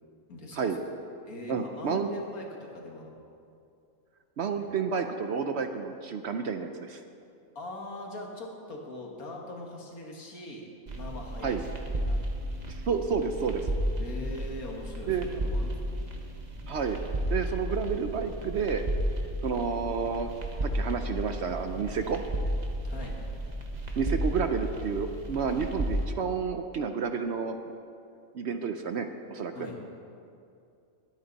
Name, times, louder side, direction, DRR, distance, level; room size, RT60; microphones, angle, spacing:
voice 1, 0.3-0.7 1.3-3.1 4.5-4.8 7.6-10.7 11.0-12.2 14.0-16.0 22.8-23.2 29.5-29.8, left 2 dB, 80° left, 0 dB, 2.2 m, -41 dB
voice 2, 1.5-2.1 4.4-7.0 11.4-11.6 12.7-13.7 15.1-15.3 16.7-17.0 17.3-18.8 19.4-20.3 20.6-22.2 24.0-27.6 28.3-29.7, right 6 dB, 60° right, 7 dB, 0.8 m, -30 dB
sound 1, 10.9-26.0, right 1 dB, 30° right, 1.2 m, -33 dB
21.0 x 9.5 x 4.0 m, 2.5 s
omnidirectional pair, 1.5 m